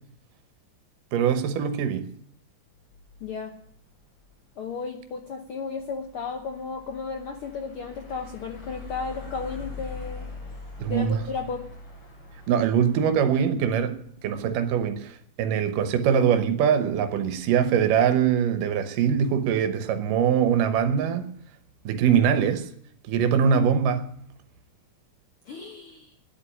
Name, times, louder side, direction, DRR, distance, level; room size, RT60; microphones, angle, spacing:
voice 1, 1.1-2.1 10.8-11.2 12.5-14.0 14.2-21.3 21.9-22.7 23.1-24.0, right 8 dB, 85° right, 2.7 m, -23 dB
sound 1, 2.8-14.9, left 4 dB, 90° left, 8.0 m, -44 dB
voice 2, 3.2-3.6 4.6-10.3 10.9-11.7 25.4-26.1, left 4 dB, 65° left, 1.3 m, -34 dB
10.5 x 8.7 x 10.0 m
omnidirectional pair, 3.7 m